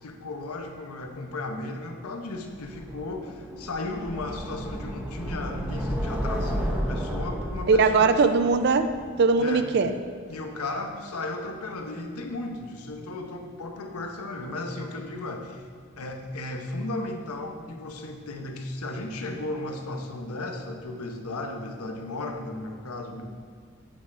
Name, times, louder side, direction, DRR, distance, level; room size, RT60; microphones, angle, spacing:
voice 1, 0.0-8.1 9.4-9.7 10.3-15.6 16.0-23.2, left 2 dB, 85° left, 4 dB, 0.8 m, -35 dB
sound 1, 2.6-9.6, equal, 5° right, 0.6 m, -33 dB
voice 2, 7.7-8.9 9.2-9.9, right 4 dB, 50° right, 10 dB, 0.3 m, -20 dB
8.0 x 4.7 x 4.2 m, 2.1 s
head